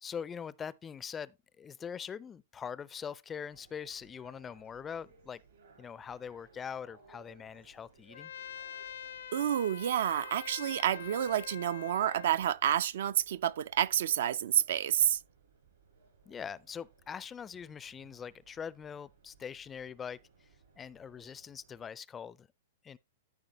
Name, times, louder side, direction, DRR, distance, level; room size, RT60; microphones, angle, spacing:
voice 1, 0.0-5.4 5.8-8.3 16.3-20.5 20.8-22.5 22.8-23.0, left 7 dB, 15° left, 0.4 m, -43 dB
sound 1, 3.5-21.9, right 4 dB, 85° right, 5.5 m, -63 dB
Trumpet, 8.1-12.4, left 9 dB, 80° left, 0.5 m, -45 dB
voice 2, 9.3-15.2, right 10 dB, 70° right, 0.4 m, -29 dB
13.0 x 5.0 x 2.9 m
hypercardioid pair, 140°, 0 cm